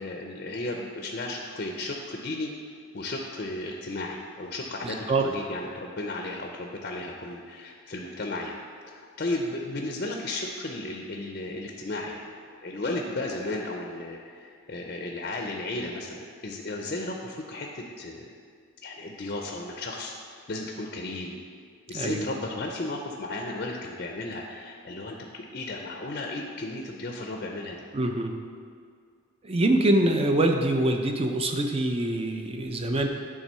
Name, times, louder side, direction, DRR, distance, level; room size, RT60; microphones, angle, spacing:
voice 1, 0.0-2.5 2.9-8.6 8.9-12.3 12.6-18.3 18.8-21.4 21.9-27.8, left 2 dB, 45° left, 1 dB, 0.5 m, -34 dB
voice 2, 4.8-5.3 21.9-22.2 27.9-28.4 29.4-33.1, right 1 dB, 25° right, 4 dB, 0.5 m, -24 dB
9.0 x 3.7 x 5.5 m, 2.1 s
head